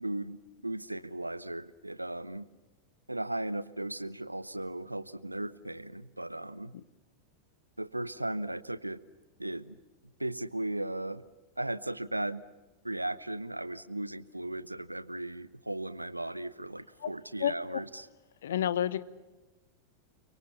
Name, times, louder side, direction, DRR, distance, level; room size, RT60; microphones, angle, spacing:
voice 1, 0.0-2.5 3.1-6.7 7.8-9.0 9.4-9.8 10.2-11.2 11.6-12.4 12.8-18.1, right 1 dB, 85° right, 19 dB, 0.8 m, -36 dB
voice 2, 17.4-17.8 18.4-19.0, left 10 dB, 60° left, 17 dB, 1.0 m, -30 dB
30.0 x 23.0 x 7.1 m, 1.2 s
figure-of-eight pair, 90°, 0 cm